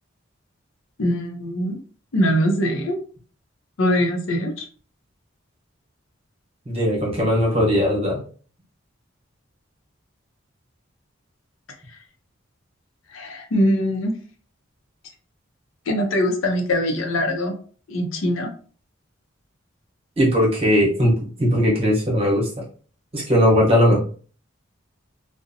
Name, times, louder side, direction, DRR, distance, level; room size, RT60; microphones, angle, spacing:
voice 1, 1.0-1.8 2.1-3.0 3.8-4.7 13.1-14.2 15.9-17.5 17.9-18.5, equal, 80° left, 4 dB, 0.6 m, -22 dB
voice 2, 6.7-8.2 20.2-22.5 23.1-24.0, equal, 30° right, -3 dB, 0.9 m, -19 dB
2.6 x 2.0 x 2.6 m, 0.42 s
head